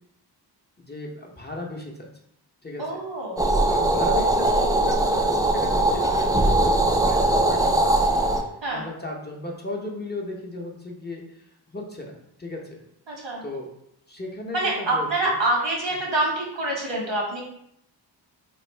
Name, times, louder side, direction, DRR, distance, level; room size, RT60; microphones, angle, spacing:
voice 1, 0.8-2.1 2.6-2.9 3.5-12.8 13.4-13.7 14.1-15.4, left 2 dB, 25° left, -1 dB, 0.6 m, -36 dB
voice 2, 2.8-3.5 8.6-8.8 13.1-13.4 14.5-17.4, right 2 dB, 80° right, -3 dB, 1.4 m, -26 dB
sound 1, 3.4-8.4, right 2 dB, 10° right, 0.3 m, -21 dB
3.1 x 2.5 x 4.3 m, 0.75 s
wide cardioid pair, 80°, 45 cm